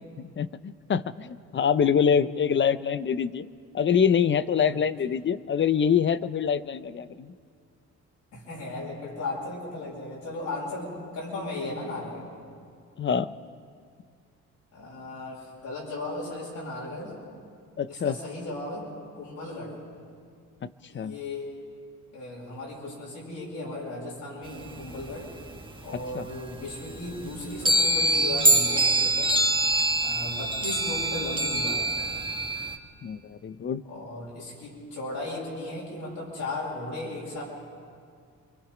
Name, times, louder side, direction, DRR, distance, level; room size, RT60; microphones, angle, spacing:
voice 1, 0.2-3.5 3.7-7.3 13.0-13.3 17.8-18.2 20.6-21.2 26.1-26.3 33.0-33.8, left 7 dB, 40° left, 15 dB, 0.7 m, -25 dB
voice 2, 8.3-12.3 14.7-17.2 17.9-18.9 19.1-19.8 20.9-21.5 22.1-25.3 25.8-29.3 30.0-32.2 33.9-37.4, left 2 dB, 75° left, -6 dB, 7.9 m, -36 dB
sound 1, 24.5-26.0 26.3-26.4 26.7-32.8, right 2 dB, 15° right, 1.7 m, -24 dB
28.0 x 24.0 x 5.1 m, 2.2 s
cardioid pair, 90°, 30 cm